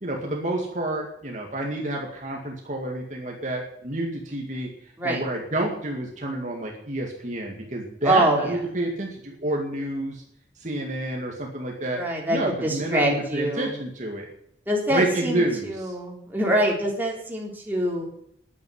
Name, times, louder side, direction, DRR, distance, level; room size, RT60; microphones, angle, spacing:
voice 1, 0.0-4.7 5.0-10.2 10.6-12.0 12.3-14.3 14.9-15.7, right 1 dB, 40° right, 0 dB, 2.2 m, -29 dB
voice 2, 8.0-8.5 12.0-13.7 14.7-18.1, right 1 dB, 10° right, -2 dB, 3.6 m, -25 dB
11.0 x 9.3 x 9.6 m, 0.71 s
head